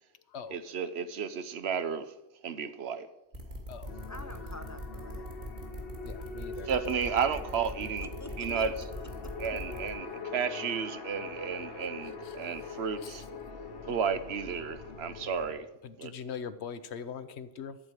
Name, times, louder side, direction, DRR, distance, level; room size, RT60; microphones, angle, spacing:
voice 1, 0.5-2.1 2.4-3.1 6.7-8.1 8.4-8.7 9.4-13.2 13.9-15.7 16.0-16.1, right 6 dB, 70° right, 1.0 m, -32 dB
sound 1, 3.3-9.9, equal, 50° right, 2.7 m, -41 dB
sound 2, 3.8-15.5, left 4 dB, 60° left, 1.3 m, -43 dB
voice 2, 4.1-5.3 8.0-8.9 9.2-9.5, left 1 dB, 20° left, 0.6 m, -47 dB
voice 3, 6.0-6.7 12.2-12.3 13.0-13.2 13.9-14.0 15.8-17.8, left 6 dB, 80° left, 1.0 m, -41 dB
14.0 x 4.8 x 9.0 m
omnidirectional pair, 1.1 m